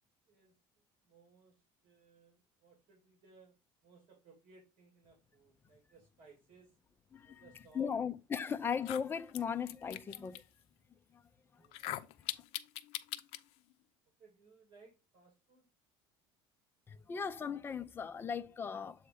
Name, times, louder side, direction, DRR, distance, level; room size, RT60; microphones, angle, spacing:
voice 1, 0.3-3.6 3.8-6.8 7.2-8.0 11.6-12.1 14.2-15.6, right 4 dB, 50° right, 2.3 m, -63 dB
voice 2, 7.7-10.3 17.1-18.9, left 7 dB, 20° left, 0.5 m, -37 dB
sound 1, 8.1-8.2 8.7-10.4 11.6-13.4, left 15 dB, 65° left, 0.5 m, -41 dB
7.6 x 2.9 x 4.9 m
cardioid pair, 145°, 11 cm